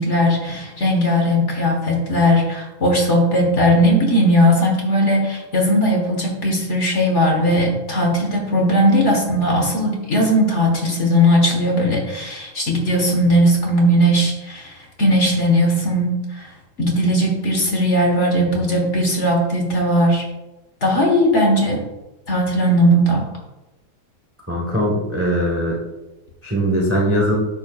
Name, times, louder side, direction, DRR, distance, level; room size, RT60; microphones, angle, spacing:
voice 1, 0.0-16.5 16.8-20.2 20.8-21.8 22.3-23.2, equal, 40° left, 0 dB, 1.5 m, -18 dB
voice 2, 24.5-25.8 26.4-27.4, equal, 10° right, -2 dB, 0.8 m, -20 dB
9.6 x 6.8 x 2.4 m, 1.0 s
omnidirectional pair, 2.3 m